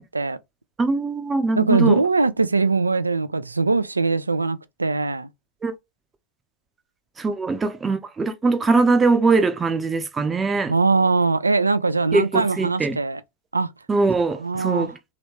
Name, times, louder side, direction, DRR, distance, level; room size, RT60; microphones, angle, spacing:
voice 1, 0.8-2.0 5.6-5.7 7.2-10.7 12.1-13.0 13.9-14.9, right 3 dB, 15° right, 0.6 m, -21 dB
voice 2, 1.6-5.3 10.7-13.2 13.5-13.7 14.4-14.9, right 3 dB, 80° right, 0.3 m, -21 dB
3.1 x 2.9 x 2.9 m
figure-of-eight pair, 90°, 0 cm